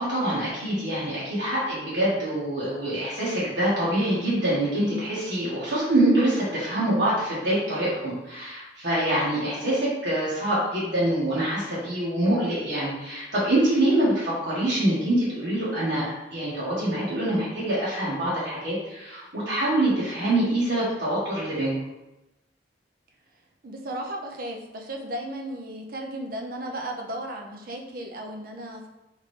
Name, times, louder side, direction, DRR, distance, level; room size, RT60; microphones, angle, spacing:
voice 1, 0.0-21.7, right 1 dB, 80° right, -9 dB, 1.3 m, -25 dB
voice 2, 23.6-28.9, right 1 dB, 50° right, 2 dB, 0.5 m, -35 dB
3.7 x 3.1 x 3.2 m, 0.96 s
head